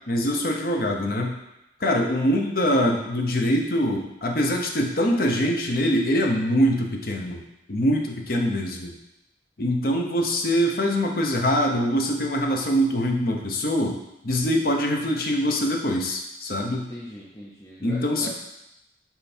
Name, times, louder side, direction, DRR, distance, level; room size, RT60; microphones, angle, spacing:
voice 1, 0.1-1.4 1.8-7.4 7.7-8.9 9.6-16.9 17.8-18.3, equal, 55° left, 1 dB, 0.8 m, -23 dB
voice 2, 2.1-2.4 16.8-18.3, equal, 15° left, -6 dB, 0.7 m, -41 dB
5.7 x 4.6 x 4.3 m, 0.88 s
head